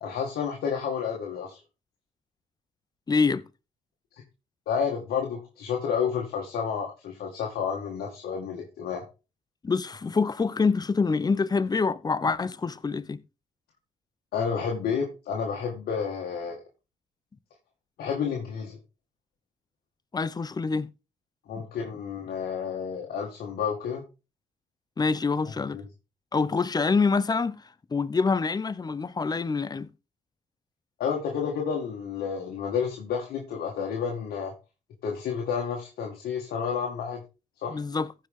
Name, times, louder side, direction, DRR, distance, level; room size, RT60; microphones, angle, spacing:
voice 1, 0.0-1.6 4.7-9.0 14.3-16.6 18.0-18.8 21.5-24.0 25.7-25.8 31.0-34.5 35.0-37.2 37.6-37.8, left 6 dB, 80° left, 2.0 m, -30 dB
voice 2, 3.1-3.4 9.6-13.2 20.1-20.9 21.6-21.7 25.0-25.8 26.3-29.9 37.7-38.1, left 4 dB, 25° left, 0.7 m, -26 dB
15.0 x 5.4 x 3.7 m
cardioid pair, 80°, 16 cm